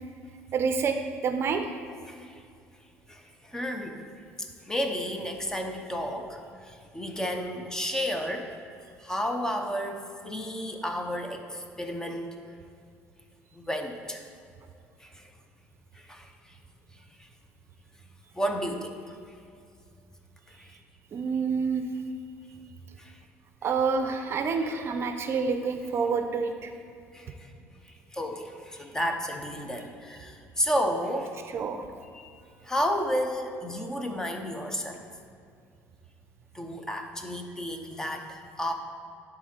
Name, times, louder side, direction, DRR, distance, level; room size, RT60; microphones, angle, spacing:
voice 1, 0.5-1.6 21.1-21.8 23.6-26.7 31.5-31.9, right 5 dB, 50° right, 7 dB, 0.5 m, -28 dB
voice 2, 2.1-2.4 3.1-4.0 4.7-8.5 9.0-12.3 13.5-14.3 15.0-15.3 15.9-16.5 18.3-19.1 20.5-20.8 23.0-23.1 27.1-27.5 27.8-31.3 32.1-32.3 32.6-35.0 36.5-38.7, equal, 10° left, 4 dB, 0.8 m, -32 dB
10.5 x 3.8 x 4.3 m, 2.4 s
cardioid pair, 95°, 6 cm